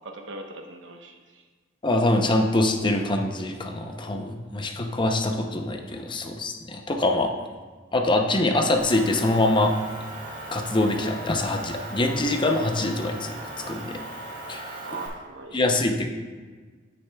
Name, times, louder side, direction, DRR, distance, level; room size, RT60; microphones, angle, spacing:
voice 1, 0.0-1.4 14.8-15.6, right 3 dB, 75° right, 3 dB, 1.0 m, -40 dB
voice 2, 1.8-7.3 7.9-9.7 10.5-13.4 13.7-14.0 14.5-14.8 15.5-16.1, left 2 dB, 25° left, 3 dB, 0.6 m, -24 dB
Motor vehicle (road) / Engine, 8.8-15.1, right 1 dB, 45° right, 2.1 m, -38 dB
9.8 x 8.8 x 2.3 m, 1.4 s
head